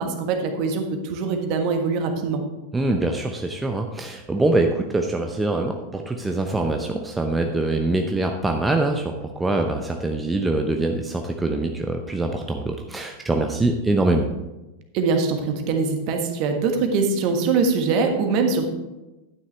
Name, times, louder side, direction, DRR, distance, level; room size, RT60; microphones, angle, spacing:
voice 1, 0.0-2.4 14.9-18.7, right 4 dB, 40° right, 5 dB, 1.5 m, -23 dB
voice 2, 2.7-14.3, right 2 dB, 10° right, 3 dB, 0.7 m, -24 dB
11.5 x 9.5 x 3.4 m, 1.1 s
figure-of-eight pair, 90°, 0 cm